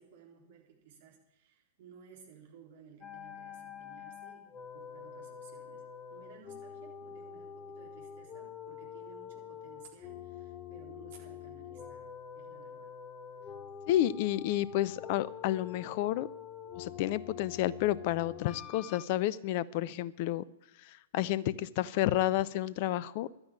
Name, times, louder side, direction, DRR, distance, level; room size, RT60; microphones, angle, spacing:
voice 1, 0.0-5.9 6.1-13.0, right 7 dB, 50° right, 0 dB, 3.8 m, -57 dB
sound 1, 3.0-19.0, left 8 dB, 25° left, 1.0 m, -46 dB
voice 2, 13.9-16.3 16.8-20.4 20.8-23.3, left 13 dB, 40° left, 19 dB, 0.6 m, -30 dB
11.5 x 9.7 x 8.8 m, 0.93 s
figure-of-eight pair, 110°, 0 cm